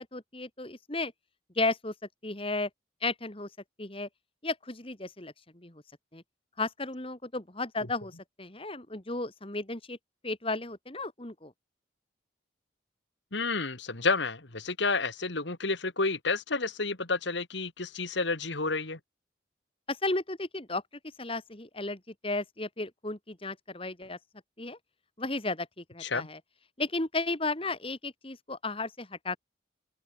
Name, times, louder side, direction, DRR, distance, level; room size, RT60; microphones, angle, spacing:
voice 1, 0.1-1.1 1.6-1.9 2.2-2.7 3.0-3.5 3.8-4.1 4.4-5.3 5.6-5.7 6.1-6.2 6.6-10.0 10.2-11.5 19.9-20.8 21.2-24.2 24.6-24.8 25.2-26.4 26.8-29.4, left 2 dB, 30° left, 2.1 m, -34 dB
voice 2, 13.3-19.0 26.0-26.3, left 3 dB, 70° left, 2.5 m, -30 dB
open air
head